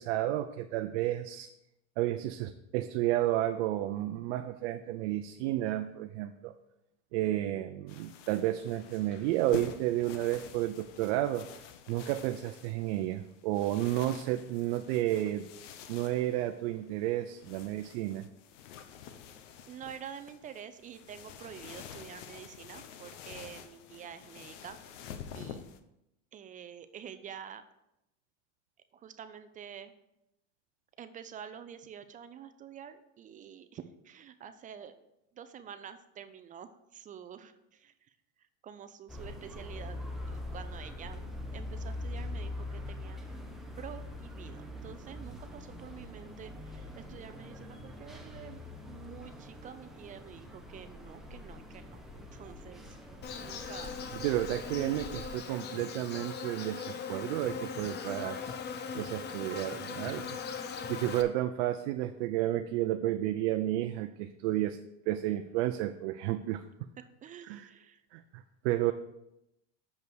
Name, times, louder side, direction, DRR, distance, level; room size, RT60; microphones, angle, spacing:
voice 1, 0.0-1.5 2.0-6.5 7.1-11.5 11.9-15.5 15.9-18.3 54.1-58.6 58.9-60.3 60.9-64.8 65.1-66.6 67.5-67.7 68.1-68.9, right 14 dB, 65° right, 7 dB, 0.6 m, -31 dB
sound 1, 7.9-25.8, left 8 dB, 80° left, 0.9 m, -48 dB
voice 2, 19.7-24.8 25.3-25.6 26.3-27.6 28.9-29.9 31.0-34.9 35.3-40.0 40.3-43.2 43.8-52.8 53.4-54.0 67.2-68.0, right 8 dB, 25° right, 11 dB, 0.4 m, -48 dB
sound 2, 39.1-55.3, left 1 dB, ahead, 0.9 m, -43 dB
Insect, 53.2-61.2, left 6 dB, 30° left, 0.7 m, -40 dB
7.0 x 5.4 x 6.1 m, 0.85 s
supercardioid pair, 135°, 36 cm